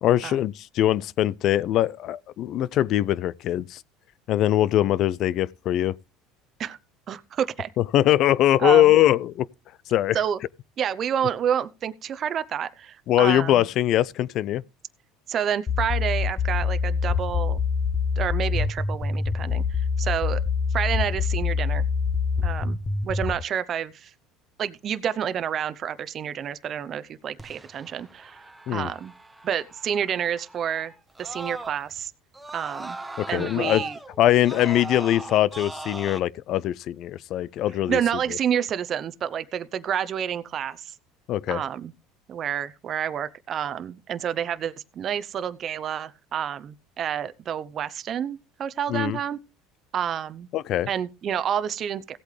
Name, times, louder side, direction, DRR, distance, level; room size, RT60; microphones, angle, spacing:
voice 1, 0.0-3.8 4.3-6.0 7.8-9.5 9.9-10.2 13.1-14.6 28.7-28.9 33.2-33.8 34.2-38.0 41.3-41.6 48.9-49.2 50.5-50.9, left 13 dB, 55° left, 0.5 m, -22 dB
voice 2, 7.1-7.7 8.6-8.9 10.1-10.4 10.8-13.7 15.3-17.6 18.2-20.4 20.7-21.8 22.4-22.8 23.0-24.1 24.6-28.4 28.7-29.1 29.4-30.9 31.2-32.1 32.5-33.0 33.3-34.0 37.9-40.9 41.5-41.9 42.3-49.4 49.9-50.5 50.9-52.2, right 9 dB, 45° right, 0.8 m, -29 dB
sound 1, 15.7-23.3, left 5 dB, 25° left, 1.4 m, -25 dB
Screaming, 27.4-32.0 32.3-36.2, right 2 dB, 10° right, 1.1 m, -39 dB
16.5 x 8.2 x 3.3 m
supercardioid pair, 105°, 0 cm